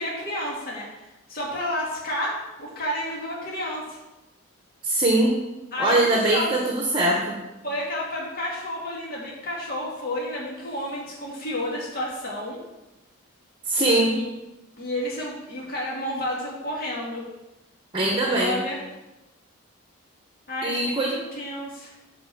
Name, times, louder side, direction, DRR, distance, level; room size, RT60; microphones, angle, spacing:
voice 1, 0.0-4.0 5.7-6.7 7.6-12.6 13.8-14.3 14.8-17.3 18.1-18.8 20.5-22.0, left 1 dB, 45° left, -4 dB, 2.1 m, -31 dB
voice 2, 4.8-5.4 5.8-7.4 13.6-14.2 17.9-18.6 20.6-21.2, right 2 dB, 25° right, -1 dB, 1.1 m, -22 dB
9.6 x 4.4 x 7.0 m, 0.99 s
head